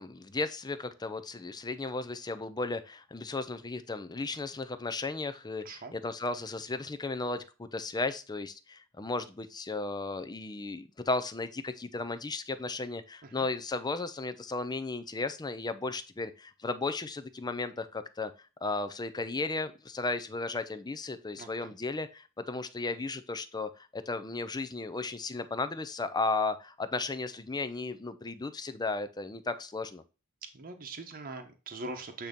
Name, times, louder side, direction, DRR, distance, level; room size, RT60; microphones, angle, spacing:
voice 1, 0.0-18.3 18.6-30.0, left 3 dB, 20° left, 11 dB, 0.5 m, -35 dB
voice 2, 5.6-6.0 13.3-13.5 21.4-21.7 30.5-32.3, right 2 dB, 40° right, 5 dB, 0.9 m, -42 dB
8.6 x 2.9 x 5.2 m, 0.31 s
head